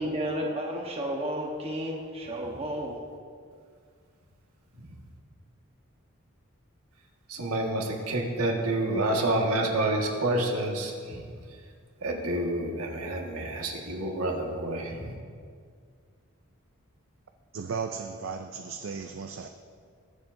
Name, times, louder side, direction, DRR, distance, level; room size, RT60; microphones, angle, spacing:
voice 1, 0.0-3.0, equal, 25° right, -1 dB, 1.0 m, -32 dB
voice 2, 7.3-11.2 12.0-15.1, right 1 dB, 85° right, 0 dB, 1.6 m, -28 dB
voice 3, 17.5-19.5, right 5 dB, 60° right, 6 dB, 0.5 m, -35 dB
21.5 x 7.3 x 2.6 m, 2.1 s
head